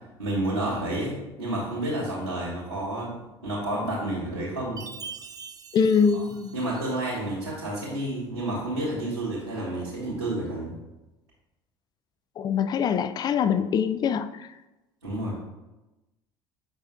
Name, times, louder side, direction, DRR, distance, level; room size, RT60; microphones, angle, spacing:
voice 1, 0.2-3.1 3.4-4.8 6.5-10.7 15.0-15.5, right 1 dB, 85° right, -10 dB, 1.5 m, -30 dB
Chime, 4.8-7.3, right 6 dB, 30° right, 0.6 m, -43 dB
voice 2, 5.7-6.5 12.4-14.5, left 6 dB, 30° left, 12 dB, 0.4 m, -24 dB
7.8 x 5.5 x 2.3 m, 1.0 s
figure-of-eight pair, 60°, 14 cm